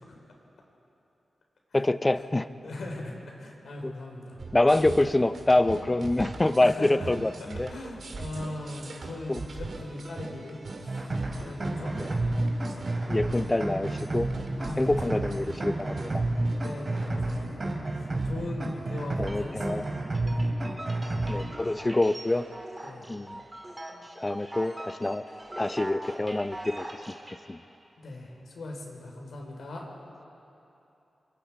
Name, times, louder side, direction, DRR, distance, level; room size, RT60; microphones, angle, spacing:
voice 1, 1.7-2.5 3.8-3.9 4.5-7.7 9.3-9.4 11.9-12.1 13.1-14.3 14.8-16.2 19.2-19.9 21.3-22.5 23.1-23.4 24.2-25.2 25.6-27.1 27.5-27.6, left 2 dB, 20° left, 13 dB, 0.6 m, -26 dB
voice 2, 2.6-4.4 6.6-7.1 7.7-12.0 12.7-13.1 14.6-15.4 16.6-20.5 22.8-23.1 28.0-29.9, left 2 dB, 80° left, 0 dB, 4.2 m, -40 dB
sound 1, 4.4-19.7, right 3 dB, 60° right, 2.2 m, -42 dB
sound 2, 10.9-21.5, right 2 dB, 40° right, 3.0 m, -30 dB
sound 3, 19.3-27.4, right 1 dB, 20° right, 2.5 m, -42 dB
27.5 x 23.5 x 4.8 m, 2.9 s
wide cardioid pair, 100°, 0 cm